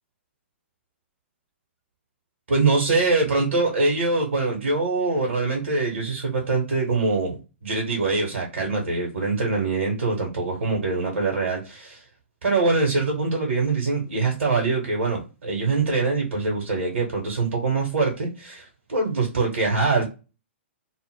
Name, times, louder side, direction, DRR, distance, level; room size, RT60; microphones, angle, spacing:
voice 1, 2.5-7.4 7.6-12.0 12.4-20.0, right 3 dB, 75° right, 0 dB, 0.8 m, -23 dB
2.0 x 2.0 x 3.1 m, 0.31 s
figure-of-eight pair, 115°, 7 cm